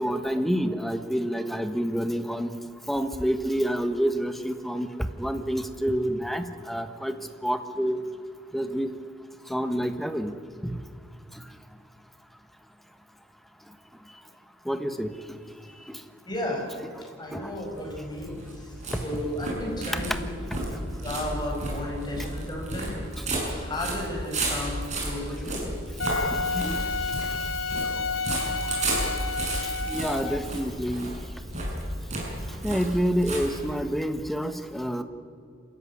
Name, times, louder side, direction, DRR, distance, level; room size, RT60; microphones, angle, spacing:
voice 1, 0.0-2.5 2.9-7.1 7.4-8.0 8.5-8.9 9.5-10.3 10.6-10.8 11.3-11.5 14.6-15.4 15.9-16.0 17.0-17.1 17.3-17.6 20.5-20.8 23.2-23.3 26.1-27.5 27.8-28.5 29.6-31.1 32.6-35.0, equal, ahead, 9 dB, 1.2 m, -29 dB
voice 2, 16.3-16.6 17.2-20.1 21.0-23.0 23.3-25.7, left 1 dB, 20° left, 0 dB, 5.7 m, -34 dB
sound 1, 17.5-34.0, right 1 dB, 40° right, 6.5 m, -33 dB
Wind instrument woodwind instrument, 26.0-30.5, left 4 dB, 90° left, 1.1 m, -30 dB
26.0 x 14.0 x 9.8 m, 2.4 s
head